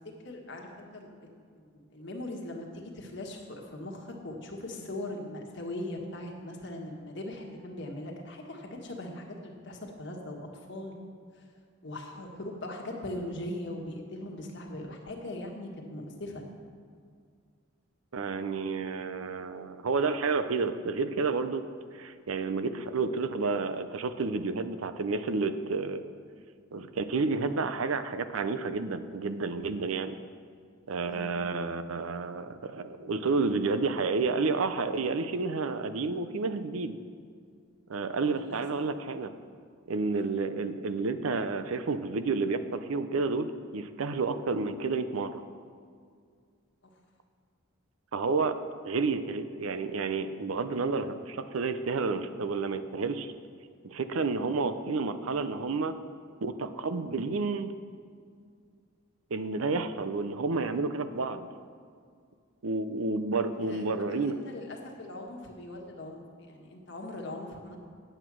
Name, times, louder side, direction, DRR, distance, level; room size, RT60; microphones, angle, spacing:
voice 1, 0.2-11.0 11.3-11.5 11.8-16.4 31.1-31.3 38.3-38.6 40.1-40.3 51.9-52.0 63.6-67.8, left 1 dB, 55° left, 1 dB, 1.4 m, -40 dB
voice 2, 18.1-21.6 21.9-26.0 26.7-30.2 30.9-37.0 37.9-39.3 39.9-45.4 48.1-48.6 48.8-53.3 53.8-56.0 56.4-57.7 59.3-61.5 62.6-64.3, right 4 dB, 85° right, 11 dB, 0.6 m, -30 dB
8.9 x 7.9 x 6.1 m, 2.1 s
head